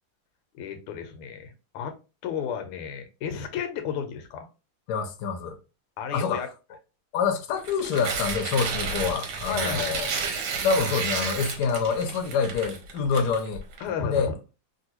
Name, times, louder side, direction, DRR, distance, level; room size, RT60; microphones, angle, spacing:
voice 1, 0.5-2.0 2.2-4.5 6.0-6.5 9.4-10.0 13.1-13.3 13.8-14.3, left 7 dB, 90° left, 1.6 m, -32 dB
voice 2, 4.9-5.6 6.1-6.4 7.1-10.1 10.6-13.6 14.0-14.3, left 5 dB, 65° left, 1.0 m, -26 dB
Tearing, 7.6-13.8, right 5 dB, 65° right, 1.2 m, -31 dB
3.4 x 2.6 x 2.8 m
omnidirectional pair, 2.4 m